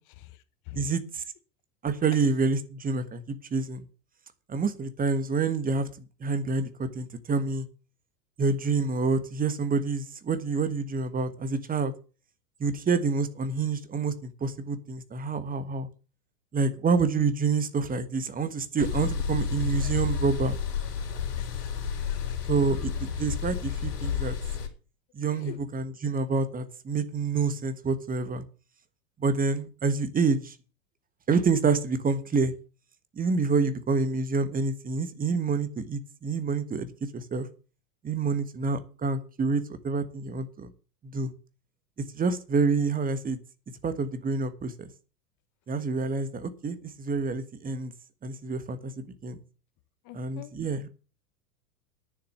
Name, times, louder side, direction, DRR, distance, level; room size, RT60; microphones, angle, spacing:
voice 1, 0.7-1.2 1.8-3.8 4.5-5.9 6.2-7.7 8.4-11.9 12.6-15.9 16.5-20.6 22.5-24.4 25.1-28.4 29.2-30.5 31.3-32.5 33.2-37.5 38.0-40.7 41.1-41.3 42.1-43.4 43.8-44.9 45.7-47.9 48.2-49.4 50.1-50.9, right 4 dB, 20° right, 11 dB, 1.5 m, -27 dB
sound 1, 18.8-24.7, left 6 dB, 75° left, 3.8 m, -30 dB
voice 2, 21.3-22.4 25.3-25.6 50.0-50.5, left 15 dB, 40° left, 11 dB, 1.5 m, -45 dB
9.9 x 7.1 x 8.1 m, 0.36 s
hypercardioid pair, 95°, 47 cm